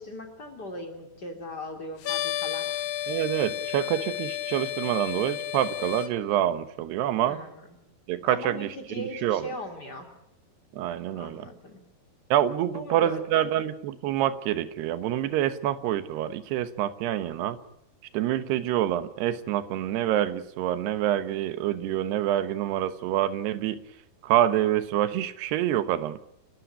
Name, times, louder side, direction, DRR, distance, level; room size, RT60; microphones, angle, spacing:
voice 1, 0.0-2.7 7.2-7.7 8.2-10.1 11.1-11.8 12.7-13.6, left 1 dB, 25° left, 4 dB, 3.3 m, -39 dB
sound 1, 2.0-6.1, left 12 dB, 85° left, 3.4 m, -32 dB
voice 2, 3.1-7.4 8.1-9.5 10.7-11.5 12.3-17.6 18.1-23.8 24.2-26.2, right 12 dB, 90° right, 12 dB, 3.3 m, -27 dB
30.0 x 14.5 x 8.3 m, 0.78 s
omnidirectional pair, 4.6 m